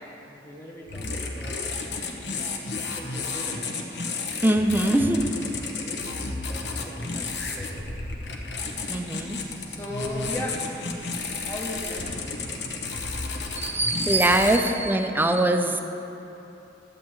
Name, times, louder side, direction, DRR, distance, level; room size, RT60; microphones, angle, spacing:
voice 1, 0.2-1.6 2.8-3.9 4.8-5.2 5.8-7.9 9.7-10.8 11.3-12.7, left 1 dB, 15° left, -4 dB, 0.8 m, -38 dB
sound 1, 0.9-14.6, left 3 dB, 75° left, 1.0 m, -32 dB
voice 2, 4.4-5.2 8.9-9.4 13.6-15.8, right 1 dB, 10° right, 5 dB, 0.5 m, -22 dB
13.0 x 8.4 x 3.1 m, 3.0 s
head